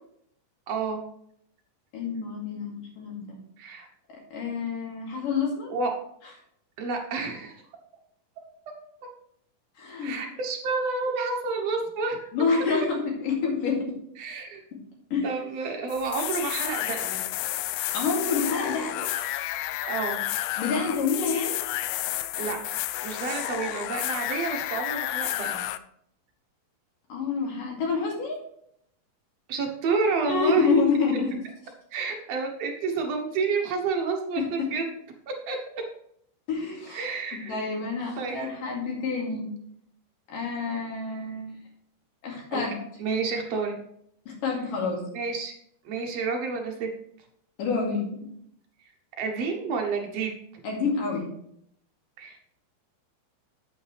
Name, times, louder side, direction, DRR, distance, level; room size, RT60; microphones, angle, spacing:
voice 1, 0.7-1.0 3.6-3.9 5.7-5.9 6.8-7.6 10.0-12.2 14.2-14.6 15.2-17.2 19.9-20.2 22.4-22.6 23.0-25.7 29.5-30.7 31.9-34.8 35.5-35.6 36.9-37.6 38.2-38.5 42.5-42.6 43.0-43.8 45.1-45.5 45.8-46.9 49.2-50.4 52.2-52.4, right 4 dB, 70° right, 2 dB, 1.6 m, -29 dB
voice 2, 1.9-3.2 4.3-5.7 9.8-10.1 12.3-13.9 15.1-15.3 17.9-19.1 20.6-21.6 27.1-28.4 30.3-31.3 34.4-34.7 36.5-37.0 37.3-39.5 40.3-41.6 42.2-42.7 44.3-45.0 47.6-48.3 50.6-51.3, left 4 dB, 65° left, -2 dB, 4.0 m, -27 dB
sound 1, 15.9-25.8, left 14 dB, 80° left, 2.2 m, -31 dB
8.8 x 8.5 x 3.3 m, 0.69 s
omnidirectional pair, 4.3 m